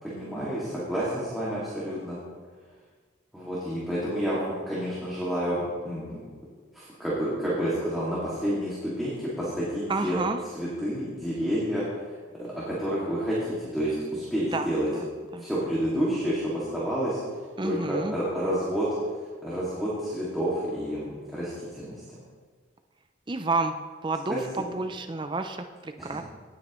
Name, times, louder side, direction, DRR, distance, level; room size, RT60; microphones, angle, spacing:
voice 1, 0.0-2.2 3.3-6.2 6.7-10.2 10.5-11.8 12.4-14.9 15.4-17.2 17.6-18.9 19.4-22.2 24.3-24.4 26.0-26.1, equal, ahead, -10 dB, 2.2 m, -29 dB
voice 2, 9.9-10.4 14.5-15.1 15.3-15.5 17.6-18.2 23.3-23.8 24.0-26.2, right 3 dB, 25° right, 7 dB, 0.5 m, -30 dB
17.5 x 9.2 x 3.1 m, 1.6 s
head